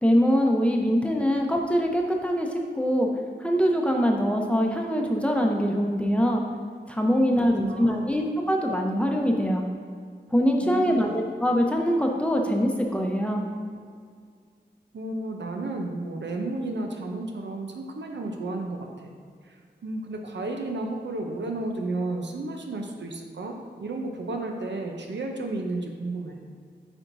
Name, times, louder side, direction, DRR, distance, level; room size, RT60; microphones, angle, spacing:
voice 1, 0.0-3.1 3.4-6.4 6.9-9.6 10.3-13.4, equal, 5° left, 1 dB, 0.7 m, -23 dB
voice 2, 7.4-8.1 10.6-11.2 14.9-19.1 19.4-19.6 19.8-26.4, right 2 dB, 85° right, 2 dB, 0.6 m, -33 dB
8.6 x 4.4 x 2.6 m, 2.1 s
wide cardioid pair, 65°, 18 cm